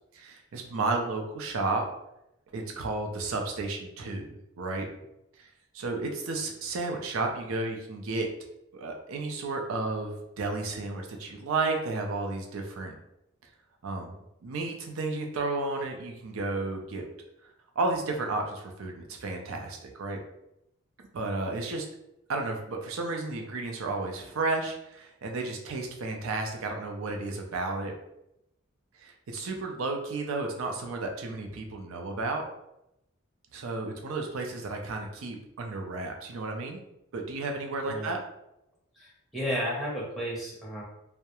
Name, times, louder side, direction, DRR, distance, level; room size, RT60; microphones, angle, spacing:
voice 1, 0.1-1.8 2.5-4.9 5.4-5.5 5.7-8.3 8.7-12.9 13.8-14.1 14.4-17.1 17.8-20.2 21.1-21.9 22.3-27.9 29.0-32.4 33.5-36.8 37.1-38.2, right 3 dB, 75° right, 3 dB, 0.4 m, -32 dB
voice 2, 39.0-40.8, equal, ahead, -6 dB, 0.6 m, -33 dB
2.3 x 2.0 x 2.9 m, 0.84 s
head